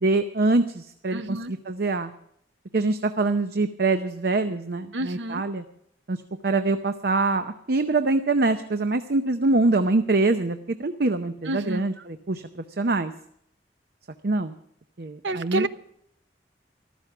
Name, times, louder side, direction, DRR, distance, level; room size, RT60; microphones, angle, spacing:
voice 1, 0.0-2.1 2.7-5.6 6.1-6.2 6.4-13.1 14.2-14.5 15.0-15.7, right 3 dB, 60° right, 8 dB, 0.7 m, -24 dB
voice 2, 1.1-1.5 4.9-5.4 11.5-11.8 15.2-15.7, right 1 dB, 85° right, 12 dB, 0.8 m, -29 dB
14.5 x 13.0 x 6.0 m, 0.71 s
head